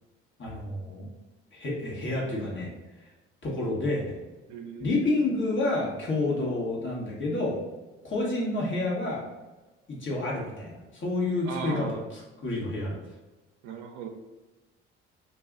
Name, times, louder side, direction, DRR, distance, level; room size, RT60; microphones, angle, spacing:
voice 1, 0.4-1.1 1.5-2.7 3.4-4.2 4.8-7.6 8.0-9.2 9.9-12.0 12.4-13.0, left 2 dB, 40° left, -4 dB, 1.2 m, -29 dB
voice 2, 4.5-5.0 11.4-12.1 13.6-14.1, right 6 dB, 75° right, 4 dB, 0.6 m, -37 dB
2.6 x 2.3 x 3.7 m, 1.2 s
hypercardioid pair, 65°, 29 cm